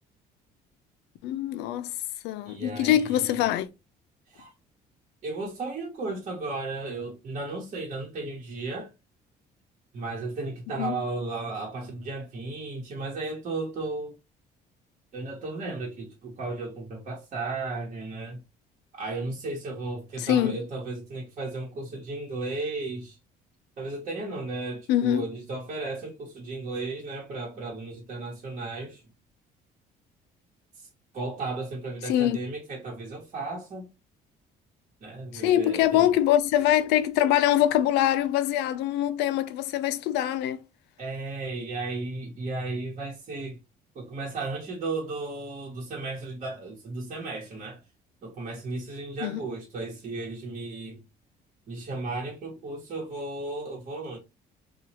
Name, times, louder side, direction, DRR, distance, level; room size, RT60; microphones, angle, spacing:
voice 1, 1.2-1.9 2.2-3.7 10.8-11.0 20.2-20.6 24.9-25.3 32.0-32.4 35.3-40.6 49.2-49.4, left 12 dB, 90° left, 0.4 m, -24 dB
voice 2, 2.4-3.4 4.3-4.5 5.2-8.9 9.9-14.1 15.1-18.4 18.9-23.2 23.8-29.0 30.8-30.9 31.1-33.9 35.0-36.1 41.0-43.6 43.9-47.8 48.2-51.0 51.7-54.2, right 3 dB, 45° right, 1.0 m, -34 dB
2.8 x 2.3 x 2.9 m
cardioid pair, 110°, 17 cm